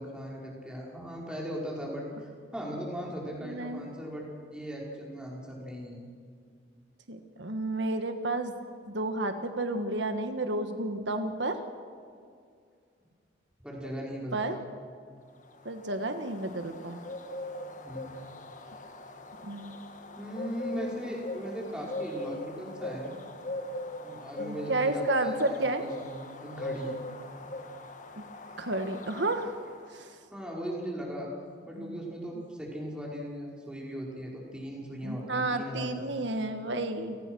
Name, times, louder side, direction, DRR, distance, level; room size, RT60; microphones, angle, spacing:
voice 1, 0.0-4.3 4.5-6.0 13.6-14.6 17.8-18.2 20.1-23.2 24.0-26.9 30.3-31.3 31.7-36.4, equal, 5° right, -3 dB, 5.2 m, -38 dB
voice 2, 3.4-3.9 7.1-8.5 8.9-11.6 14.3-14.6 15.7-17.0 19.4-19.7 24.4-25.8 28.2-28.3 28.6-29.6 29.9-30.1 31.8-32.0 35.0-37.2, right 2 dB, 80° right, 7 dB, 1.6 m, -31 dB
sound 1, 15.4-30.0, left 1 dB, 45° left, 1.6 m, -40 dB
29.5 x 19.0 x 6.3 m, 2.2 s
head